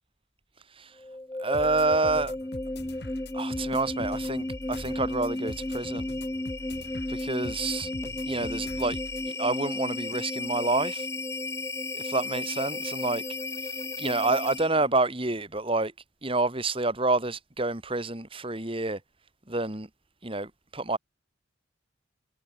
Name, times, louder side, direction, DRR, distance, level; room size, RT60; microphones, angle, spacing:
sound 1, 1.0-14.9, left 2 dB, 15° left, 0.6 m, -34 dB
voice 1, 1.4-2.3 3.3-6.1 7.1-7.9 8.3-9.0 9.4-11.1 11.9-13.2 14.0-15.9 16.2-19.0 19.5-19.9 20.2-21.0, right 2 dB, 25° right, 2.1 m, -28 dB
sound 2, 1.5-9.3, left 1 dB, 55° left, 2.2 m, -43 dB
head